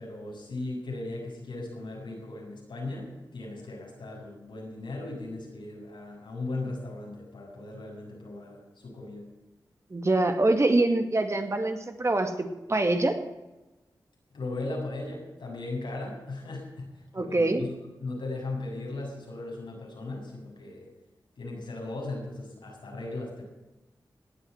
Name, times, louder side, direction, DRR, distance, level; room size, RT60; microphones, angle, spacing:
voice 1, 0.0-9.3 14.3-20.9 21.4-23.5, left 2 dB, 85° left, -2 dB, 7.3 m, -37 dB
voice 2, 9.9-13.2 17.1-17.6, right 2 dB, 35° right, 6 dB, 2.3 m, -25 dB
18.0 x 9.0 x 8.2 m, 1.0 s
cardioid pair, 60°, 8 cm